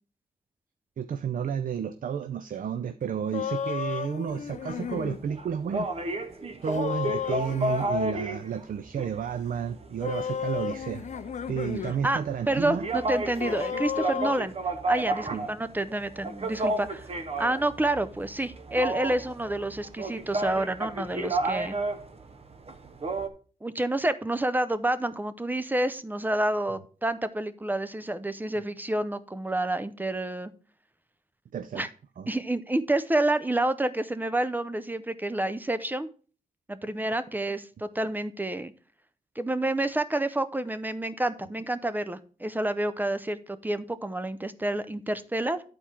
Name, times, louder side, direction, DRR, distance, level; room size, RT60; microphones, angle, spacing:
voice 1, 1.0-5.9 6.6-11.0 11.5-12.9 15.3-15.5 31.5-31.9 32.2-32.3, right 7 dB, 70° right, 10 dB, 0.5 m, -31 dB
sound 1, 3.3-5.2 6.6-7.9 10.0-12.0 12.3-12.4 13.4-14.4, left 8 dB, 55° left, 0.4 m, -33 dB
sound 2, 4.3-23.3, right 2 dB, 45° right, 0.8 m, -33 dB
voice 2, 12.5-14.5 14.9-17.1 17.4-21.8 23.6-30.5 31.7-31.9 32.3-36.1 36.7-38.7 39.4-45.6, right 1 dB, 10° right, 12 dB, 0.5 m, -29 dB
10.0 x 4.3 x 4.5 m, 0.39 s
wide cardioid pair, 110°, 15 cm